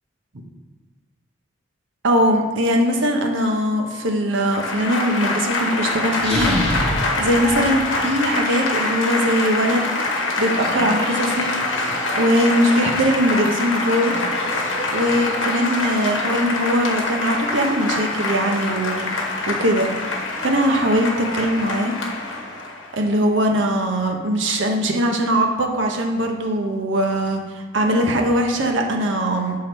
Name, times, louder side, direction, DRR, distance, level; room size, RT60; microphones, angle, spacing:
voice 1, 2.0-6.5 7.0-11.5 11.8-14.1 14.9-21.9 22.9-27.4 27.7-29.6, equal, 75° right, 2 dB, 0.9 m, -21 dB
Applause / Crowd, 4.4-23.0, left 2 dB, 85° left, 1.0 m, -25 dB
sound 1, 6.1-8.3, equal, 5° left, 1.9 m, -26 dB
6.8 x 3.8 x 4.3 m, 1.4 s
head